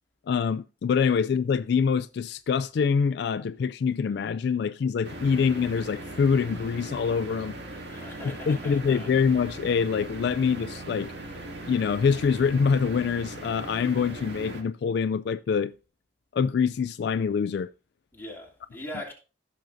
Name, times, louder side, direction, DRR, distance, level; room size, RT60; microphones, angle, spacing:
voice 1, 0.3-7.5 8.2-11.1 11.7-15.7 16.3-17.7, left 6 dB, 60° left, 0.3 m, -25 dB
sound 1, 5.0-14.6, right 1 dB, 65° right, 2.1 m, -39 dB
voice 2, 7.7-9.1 18.1-19.1, left 1 dB, 10° left, 2.8 m, -41 dB
15.0 x 6.3 x 2.6 m
head